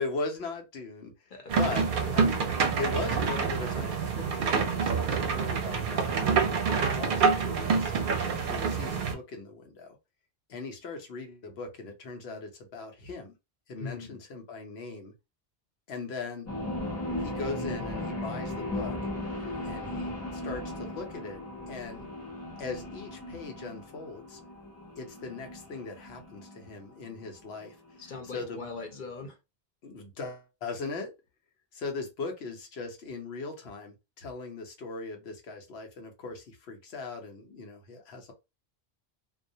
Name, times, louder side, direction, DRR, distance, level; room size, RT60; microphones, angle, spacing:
voice 1, 0.0-2.4 2.8-6.5 6.9-10.0 10.5-13.3 13.7-15.1 15.9-16.5 17.2-19.0 19.4-22.1 22.6-24.4 25.0-27.8 28.3-28.6 29.8-31.1 31.7-38.3, left 4 dB, 80° left, 1.0 m, -39 dB
sound 1, 1.5-9.1, right 5 dB, 60° right, 0.6 m, -27 dB
voice 2, 13.8-14.2 28.0-29.4, left 4 dB, 55° left, 0.8 m, -40 dB
sound 2, 16.5-28.4, left 1 dB, 20° left, 0.6 m, -37 dB
2.3 x 2.1 x 2.6 m
omnidirectional pair, 1.1 m